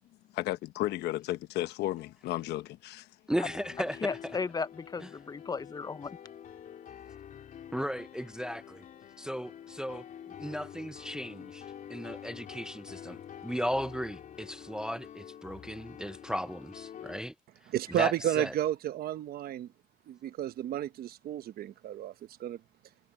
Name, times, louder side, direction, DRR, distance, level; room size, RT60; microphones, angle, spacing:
voice 1, 0.4-3.1, left 15 dB, 80° left, 1.1 m, -33 dB
voice 2, 3.3-4.4 5.0-5.1 7.7-8.8 9.2-10.0 10.4-17.3 17.9-18.5, equal, 5° right, 0.5 m, -36 dB
Piano, 3.5-17.2, left 9 dB, 50° left, 4.1 m, -47 dB
voice 3, 4.0-6.2, left 4 dB, 25° left, 0.8 m, -35 dB
voice 4, 17.7-19.7 20.1-22.1 22.4-22.6, right 12 dB, 65° right, 1.2 m, -32 dB
cardioid pair, 110°, 17 cm